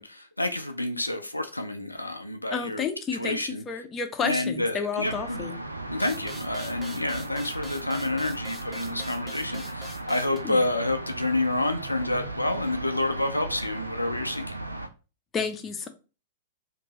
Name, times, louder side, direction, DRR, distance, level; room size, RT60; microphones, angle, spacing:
voice 1, 0.0-2.8 3.1-3.6 4.2-5.4 5.9-14.4, left 2 dB, 90° left, 6 dB, 0.4 m, -29 dB
voice 2, 2.5-3.4 3.7-5.6 10.4-10.6 15.3-15.9, left 6 dB, 20° left, 6 dB, 0.5 m, -30 dB
sound 1, 5.0-14.9, right 2 dB, 85° right, 0.4 m, -37 dB
sound 2, 6.0-10.4, equal, 10° right, 0.9 m, -43 dB
2.9 x 2.5 x 3.0 m, 0.32 s
figure-of-eight pair, 100°, 0 cm